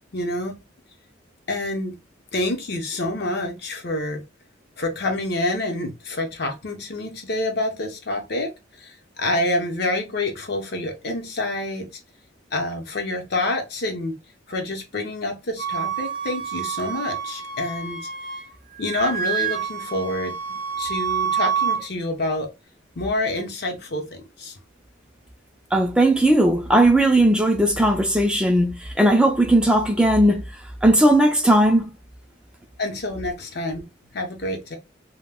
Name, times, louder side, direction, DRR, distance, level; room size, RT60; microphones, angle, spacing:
voice 1, 0.1-0.6 1.5-2.0 2.3-4.2 4.8-8.5 8.8-11.9 12.5-14.2 14.5-18.1 18.8-22.5 23.0-24.5 32.8-33.9 34.1-34.8, left 2 dB, 60° left, 0.7 m, -27 dB
Wind instrument woodwind instrument, 15.6-18.5 18.8-21.8, right 7 dB, 50° right, 0.6 m, -27 dB
voice 2, 25.7-30.4 30.8-31.9, right 1 dB, 5° right, 0.3 m, -17 dB
2.2 x 2.1 x 3.4 m
head